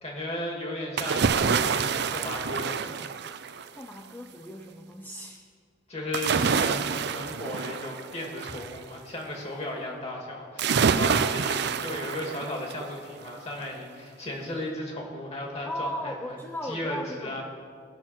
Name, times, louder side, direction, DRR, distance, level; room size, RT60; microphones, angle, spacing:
voice 1, 0.0-3.0 3.5-3.7 5.9-16.4 16.6-17.4, left 1 dB, 35° left, -1 dB, 2.5 m, -35 dB
sound 1, 1.0-3.8 6.1-8.8 10.6-12.9 13.3-13.4, right 6 dB, 60° right, 0.5 m, -27 dB
voice 2, 3.7-5.4 15.7-17.4, left 1 dB, 10° left, 2 dB, 0.6 m, -37 dB
18.5 x 6.3 x 6.0 m, 2.1 s
head